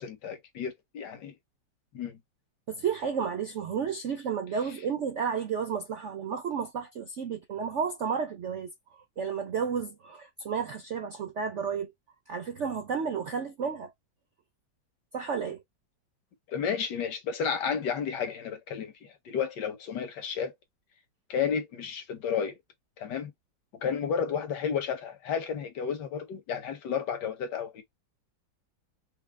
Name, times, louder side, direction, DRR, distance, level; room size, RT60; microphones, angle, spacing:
voice 1, 0.0-1.3 1.9-2.2 16.5-20.5 21.3-22.5 23.0-23.3 23.8-27.8, left 7 dB, 65° left, 1.5 m, -32 dB
voice 2, 2.7-8.7 9.2-11.9 12.3-13.9 15.1-15.6, right 6 dB, 65° right, 0.7 m, -32 dB
4.8 x 2.0 x 3.3 m
omnidirectional pair, 2.0 m